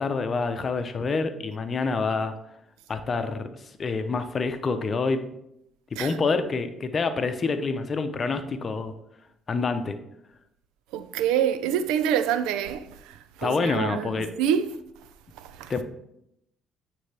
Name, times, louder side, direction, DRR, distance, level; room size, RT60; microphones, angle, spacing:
voice 1, 0.0-2.3 2.9-5.2 6.0-8.9 9.5-10.0 13.4-14.3 15.7-15.8, left 4 dB, 45° left, 0.7 m, -27 dB
voice 2, 10.9-14.7 15.4-15.7, right 9 dB, 85° right, 0.3 m, -27 dB
9.5 x 3.4 x 3.4 m
supercardioid pair, 65°, 0 cm